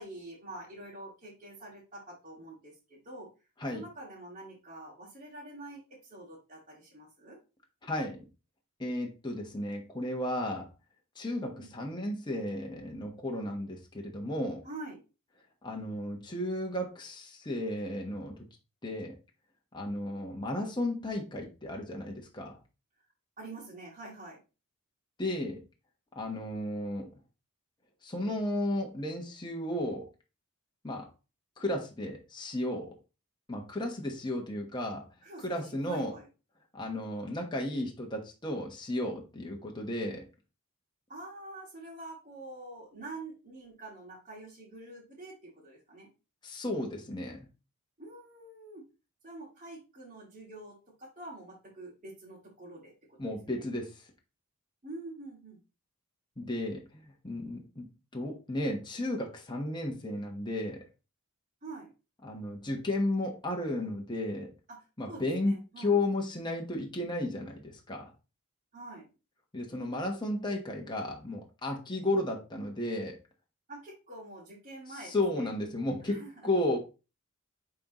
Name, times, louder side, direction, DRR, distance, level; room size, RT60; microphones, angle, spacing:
voice 1, 0.0-3.3 3.7-7.4 11.6-11.7 14.6-15.0 23.4-24.4 35.2-36.3 41.1-46.1 48.0-48.8 49.2-53.7 54.8-55.6 61.6-61.9 65.1-65.9 68.7-69.1 73.7-75.5 76.0-76.5, right 2 dB, 35° right, -6 dB, 2.2 m, -46 dB
voice 2, 7.8-8.3 8.8-10.7 11.2-14.6 15.6-18.4 18.8-19.2 19.7-22.6 25.2-25.6 26.1-27.1 28.0-30.1 30.8-31.1 31.6-32.9 33.5-35.1 35.4-36.1 36.7-40.3 46.4-47.5 53.2-53.9 56.4-60.8 62.2-64.5 65.0-68.1 69.5-73.2 75.0-76.8, left 1 dB, 20° left, 0 dB, 1.2 m, -34 dB
9.4 x 3.9 x 3.0 m, 0.31 s
head